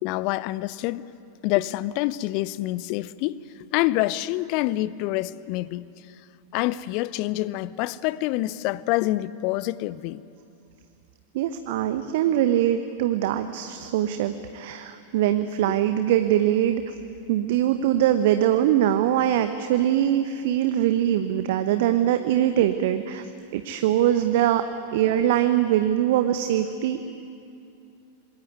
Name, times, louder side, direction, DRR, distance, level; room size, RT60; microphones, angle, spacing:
voice 1, 0.0-1.0 1.4-3.4 3.7-5.8 6.5-10.2, left 17 dB, 45° left, 19 dB, 0.7 m, -26 dB
voice 2, 11.3-16.9 17.3-24.7 24.9-27.1, right 11 dB, 50° right, 9 dB, 1.0 m, -22 dB
26.0 x 21.5 x 9.4 m, 2.6 s
figure-of-eight pair, 90°, 0 cm